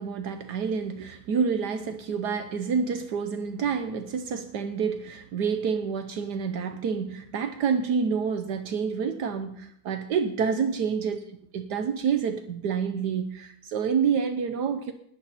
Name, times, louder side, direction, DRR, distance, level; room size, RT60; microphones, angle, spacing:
voice 1, 0.0-11.2 11.5-14.9, right 6 dB, 70° right, 8 dB, 1.3 m, -28 dB
20.0 x 7.5 x 4.2 m, 0.72 s
omnidirectional pair, 1.9 m